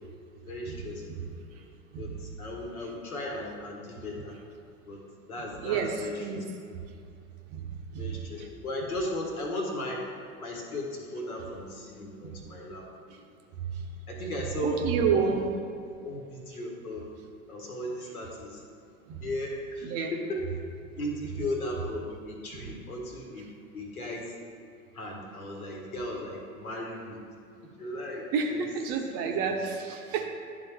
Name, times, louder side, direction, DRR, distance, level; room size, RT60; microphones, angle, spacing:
voice 1, 0.5-1.3 2.0-4.4 4.9-5.0 5.3-6.4 8.0-10.0 10.4-12.8 14.1-15.3 16.0-17.1 17.5-18.6 19.2-20.4 21.0-23.5 23.7-24.3 24.9-27.2 27.8-28.7, left 1 dB, 75° left, 0 dB, 1.5 m, -36 dB
voice 2, 14.6-15.5 19.1-19.2 19.8-20.1 28.3-30.3, right 6 dB, 35° right, 3 dB, 0.7 m, -28 dB
11.0 x 3.8 x 3.4 m, 2.4 s
figure-of-eight pair, 90°, 44 cm